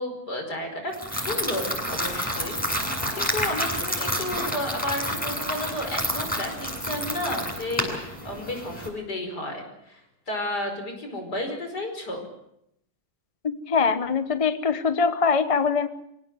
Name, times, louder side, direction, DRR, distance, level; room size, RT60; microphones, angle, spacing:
voice 1, 0.0-12.2, left 1 dB, 60° left, 4 dB, 5.6 m, -32 dB
sound 1, 0.9-8.9, equal, 5° left, 7.4 m, -29 dB
voice 2, 13.4-15.9, left 5 dB, 25° left, 11 dB, 0.8 m, -23 dB
25.5 x 17.0 x 7.9 m, 0.77 s
omnidirectional pair, 1.9 m